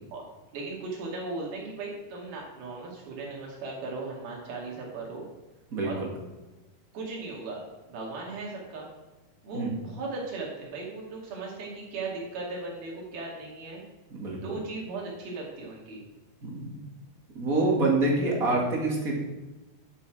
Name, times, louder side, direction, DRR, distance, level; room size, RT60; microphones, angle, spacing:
voice 1, 0.5-5.3 5.8-6.0 6.9-7.6 7.9-8.9 9.4-13.8 14.4-16.0, right 3 dB, 80° right, -2 dB, 4.3 m, -37 dB
voice 2, 5.7-6.1 9.5-9.7 14.1-14.4 16.4-16.8 17.3-19.2, right 2 dB, 30° right, -2 dB, 1.9 m, -26 dB
11.5 x 7.0 x 4.9 m, 1.1 s
omnidirectional pair, 4.3 m